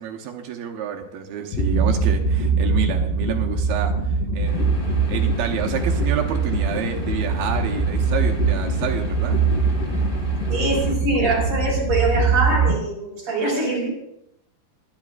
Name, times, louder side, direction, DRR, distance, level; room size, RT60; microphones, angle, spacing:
voice 1, 0.0-4.7 5.1-9.4, right 8 dB, 75° right, 2 dB, 2.7 m, -29 dB
sound 1, 1.5-12.8, right 4 dB, 80° left, 3.7 m, -22 dB
sound 2, 4.4-10.9, left 2 dB, 15° left, 2.0 m, -36 dB
voice 2, 10.5-13.9, right 3 dB, 40° right, -3 dB, 5.8 m, -23 dB
23.5 x 10.5 x 2.5 m, 0.78 s
omnidirectional pair, 4.6 m